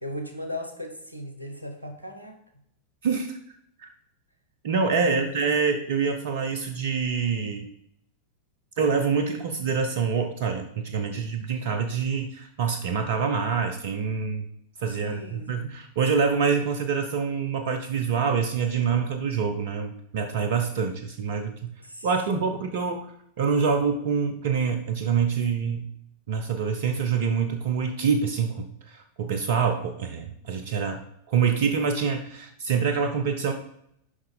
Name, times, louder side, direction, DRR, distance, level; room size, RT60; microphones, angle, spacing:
voice 1, 0.0-2.4 5.2-5.5 15.0-15.7 21.8-22.1 22.4-22.6, left 1 dB, 85° right, 5 dB, 0.9 m, -37 dB
voice 2, 3.0-3.4 3.8-3.9 4.6-7.7 8.8-14.4 14.8-21.7 22.0-25.9 26.3-33.5, right 6 dB, 55° right, 6 dB, 0.6 m, -26 dB
6.1 x 5.2 x 3.9 m, 0.73 s
figure-of-eight pair, 90°, 0 cm